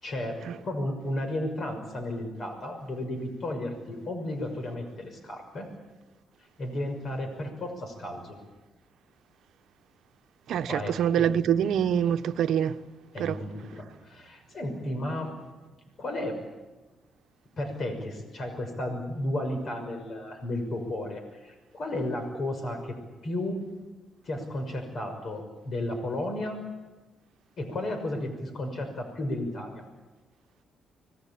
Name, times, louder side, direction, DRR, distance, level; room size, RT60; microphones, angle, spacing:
voice 1, 0.0-0.4 0.6-5.7 6.6-8.4 10.6-11.6 13.1-15.3 16.0-16.3 17.6-23.0 23.2-23.6 24.2-26.6 27.6-29.8, left 1 dB, 50° left, 6.1 m, -33 dB
voice 2, 10.5-12.7 13.2-13.4, right 9 dB, 75° right, 1.1 m, -25 dB
25.5 x 20.5 x 8.6 m
cardioid pair, 90°, 0 cm